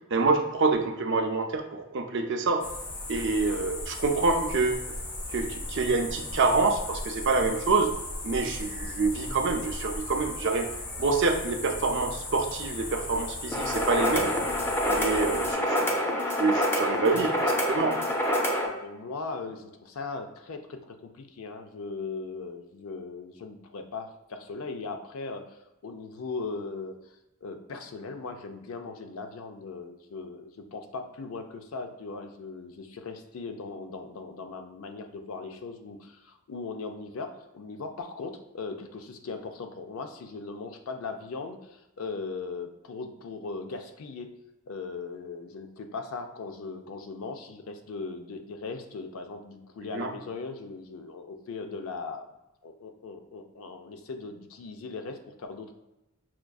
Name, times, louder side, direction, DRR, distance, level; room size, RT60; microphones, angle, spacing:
voice 1, 0.1-2.6 3.1-4.9 5.3-7.9 8.2-10.7 11.0-14.4 14.9-15.9 16.4-18.0 49.9-50.1, right 3 dB, 55° right, 5 dB, 0.5 m, -26 dB
sound 1, 2.6-15.5, left 2 dB, 40° left, 0.8 m, -37 dB
sound 2, 13.5-18.7, equal, 10° left, 0.5 m, -27 dB
voice 2, 18.6-27.0 27.4-44.3 44.7-52.3 52.6-55.7, left 4 dB, 70° left, 6 dB, 0.4 m, -39 dB
5.8 x 2.5 x 2.3 m, 0.94 s
head